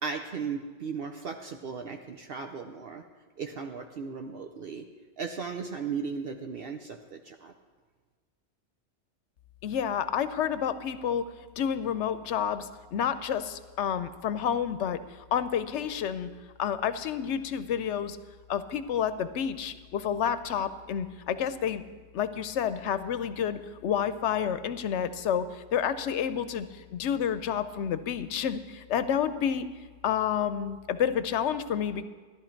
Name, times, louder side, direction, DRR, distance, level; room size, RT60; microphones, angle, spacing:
voice 1, 0.0-3.0 3.4-4.9 5.2-7.5, right 5 dB, 60° right, 4 dB, 0.9 m, -36 dB
voice 2, 9.6-11.3 11.6-15.0 15.3-16.3 16.6-18.2 18.5-21.8 22.1-29.7 30.0-32.0, left 8 dB, 90° left, 12 dB, 0.9 m, -29 dB
14.0 x 11.5 x 4.5 m, 1.5 s
omnidirectional pair, 1.2 m